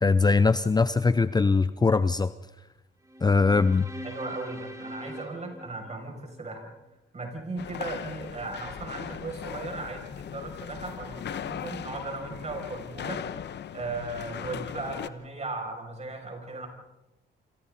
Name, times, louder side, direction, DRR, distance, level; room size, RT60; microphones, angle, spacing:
voice 1, 0.0-2.3 3.2-3.9, left 4 dB, 20° left, 13 dB, 0.7 m, -21 dB
sound 1, 3.0-6.4, equal, 15° right, 5.3 m, -42 dB
voice 2, 4.0-6.7 7.1-13.4 13.7-16.7, right 2 dB, 35° right, 2 dB, 7.3 m, -37 dB
sound 2, 7.6-15.1, left 9 dB, 60° left, 1.1 m, -38 dB
27.0 x 27.0 x 4.3 m, 0.98 s
cardioid pair, 90°, 20 cm